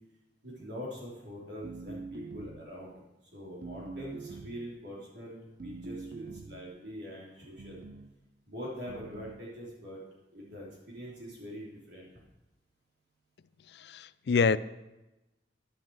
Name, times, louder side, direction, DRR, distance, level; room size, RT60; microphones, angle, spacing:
voice 1, 0.4-3.0 3.3-7.8 8.5-10.0 10.3-12.1, equal, 70° right, -4 dB, 3.4 m, -43 dB
sound 1, 1.6-2.8 3.6-4.7 5.6-6.7 7.6-8.1 8.9-9.5, right 4 dB, 50° right, 0.5 m, -44 dB
voice 2, 13.7-14.6, left 5 dB, 65° left, 15 dB, 0.4 m, -26 dB
11.0 x 10.5 x 4.7 m, 1.0 s
head